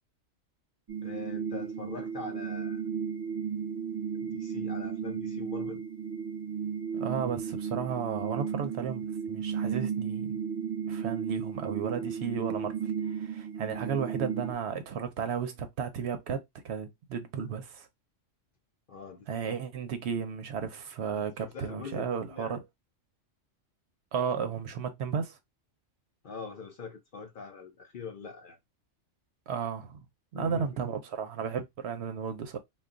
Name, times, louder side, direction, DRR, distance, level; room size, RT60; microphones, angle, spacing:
sound 1, 0.9-14.5, right 7 dB, 30° right, 0.8 m, -34 dB
voice 1, 1.0-2.8 4.2-5.8 13.6-13.9 18.9-19.6 21.4-22.6 26.2-28.6 30.3-30.8, left 5 dB, 55° left, 0.6 m, -43 dB
voice 2, 6.9-10.4 10.9-12.7 13.1-16.4 16.6-17.9 19.3-22.6 24.1-25.4 29.5-30.0 30.3-32.6, right 7 dB, 65° right, 0.8 m, -34 dB
2.3 x 2.3 x 3.6 m
omnidirectional pair, 1.3 m